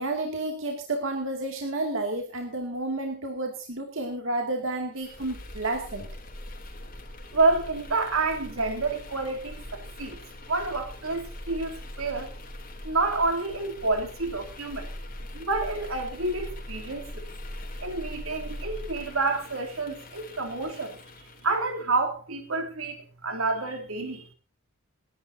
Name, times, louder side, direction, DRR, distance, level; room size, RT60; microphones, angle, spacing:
voice 1, 0.0-6.1, right 2 dB, 65° right, 2.5 m, -31 dB
sound 1, 4.9-21.6, left 1 dB, 40° left, 3.2 m, -41 dB
voice 2, 7.3-10.2 10.5-12.3 12.8-14.9 15.3-17.3 17.8-24.3, right 3 dB, 80° right, 3.2 m, -29 dB
28.5 x 11.0 x 2.8 m
head